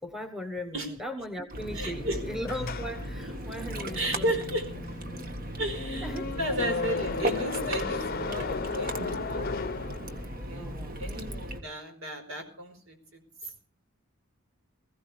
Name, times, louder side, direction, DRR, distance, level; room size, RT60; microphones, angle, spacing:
voice 1, 0.0-4.4 6.0-7.0 10.5-10.9, equal, ahead, 6 dB, 1.3 m, -38 dB
Ocean, 1.5-11.6, right 1 dB, 45° right, 1.7 m, -37 dB
voice 2, 1.7-2.2 3.9-4.6 5.6-6.1 6.4-8.5 8.7-9.6 10.5-13.5, right 1 dB, 70° right, 6 dB, 4.6 m, -33 dB
sound 1, 2.5-10.5, left 4 dB, 45° left, 0.7 m, -35 dB
20.5 x 16.0 x 3.4 m, 0.41 s
head